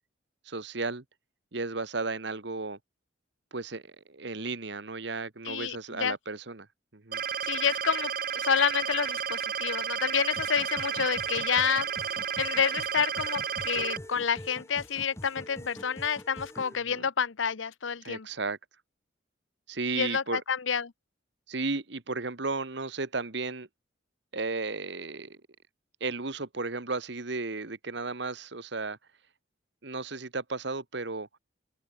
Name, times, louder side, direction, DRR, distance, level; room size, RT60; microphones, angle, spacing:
voice 1, 0.4-1.0 1.5-2.8 3.5-3.8 4.1-6.7 6.9-7.2 16.9-17.0 18.0-18.6 19.7-20.4 21.5-23.7 24.3-25.4 26.0-29.0 29.8-31.3, right 3 dB, 60° right, 1.4 m, -34 dB
voice 2, 5.4-6.2 7.4-11.9 12.4-18.3 20.0-20.9, left 7 dB, 75° left, 0.8 m, -29 dB
sound 1, 7.1-14.0, right 7 dB, 45° right, 1.7 m, -32 dB
sound 2, 10.4-16.8, left 1 dB, 15° left, 1.3 m, -45 dB
open air
head